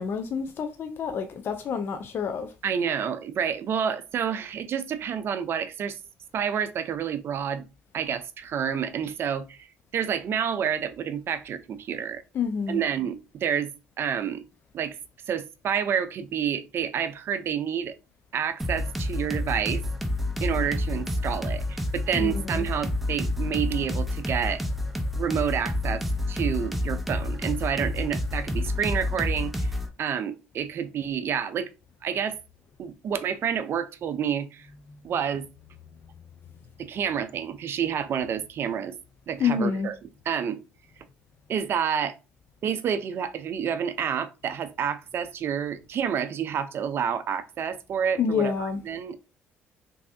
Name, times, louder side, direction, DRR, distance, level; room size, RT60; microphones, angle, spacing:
voice 1, 0.0-2.5 12.3-12.8 22.1-22.7 34.7-35.2 39.4-39.9 48.2-48.8, left 6 dB, 50° left, 0.4 m, -28 dB
voice 2, 2.6-6.0 6.3-7.7 7.9-9.7 9.9-12.2 12.7-13.7 14.0-14.4 14.7-15.0 15.3-17.9 18.3-19.8 20.4-24.6 25.2-26.0 26.3-29.7 30.0-31.7 32.0-32.4 32.8-34.7 35.0-35.5 36.8-39.0 39.3-40.0 40.3-40.6 41.5-42.1 42.6-48.5 48.8-49.2, right 8 dB, 55° right, 0.4 m, -29 dB
sound 1, 18.6-29.9, left 1 dB, ahead, 0.5 m, -29 dB
3.1 x 2.7 x 2.6 m
supercardioid pair, 85°, 5 cm